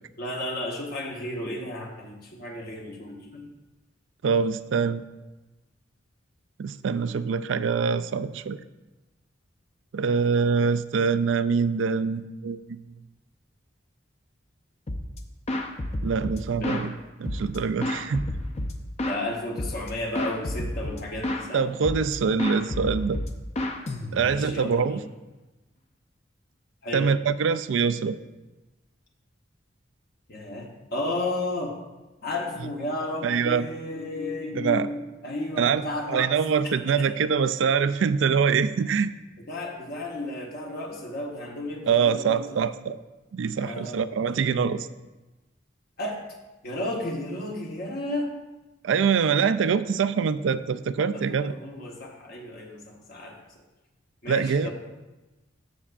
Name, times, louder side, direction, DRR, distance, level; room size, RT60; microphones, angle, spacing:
voice 1, 0.2-3.5 16.6-16.9 19.0-21.7 24.1-25.1 26.8-27.1 30.3-31.8 32.2-36.3 36.9-37.1 39.5-42.6 43.6-44.8 46.0-46.2 46.6-48.3 51.1-53.4 54.2-54.7, left 1 dB, 55° left, -1 dB, 1.0 m, -33 dB
voice 2, 4.2-5.0 6.6-8.6 9.9-12.9 16.0-16.9 17.2-18.3 21.5-23.2 24.1-25.0 26.9-28.2 33.2-33.7 34.5-34.9 35.6-39.1 41.9-43.0 43.3-44.9 48.8-51.5 54.3-54.7, right 6 dB, 80° right, 13 dB, 0.4 m, -24 dB
sound 1, 14.9-15.2 15.5-16.9 17.2-19.2 19.6-19.9 20.1-21.5 21.8-22.1 22.4-24.5, left 1 dB, 35° left, 0.6 m, -30 dB
14.5 x 5.5 x 2.5 m, 1.1 s
head